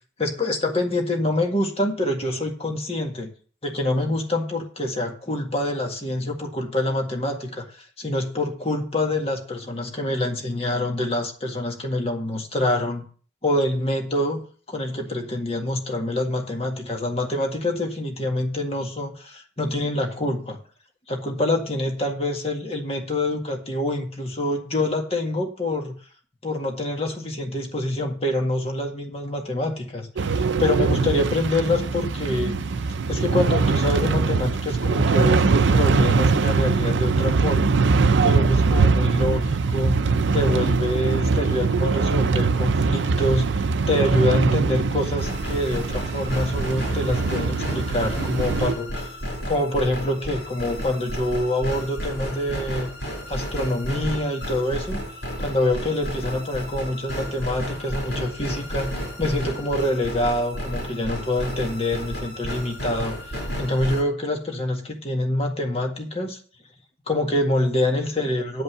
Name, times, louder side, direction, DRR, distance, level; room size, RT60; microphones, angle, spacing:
voice 1, 0.2-3.3 3.6-13.0 13.4-14.4 14.7-20.6 21.1-26.0 26.4-32.6 33.1-37.7 38.2-40.0 40.3-49.1 49.5-52.9 53.3-55.0 55.4-66.4 67.1-68.6, left 1 dB, 35° left, 2 dB, 1.8 m, -26 dB
sound 1, 30.2-48.7, right 4 dB, 75° right, 0.5 m, -22 dB
sound 2, 45.2-64.0, equal, 70° left, 6.2 m, -32 dB
9.8 x 5.4 x 8.0 m, 0.43 s
head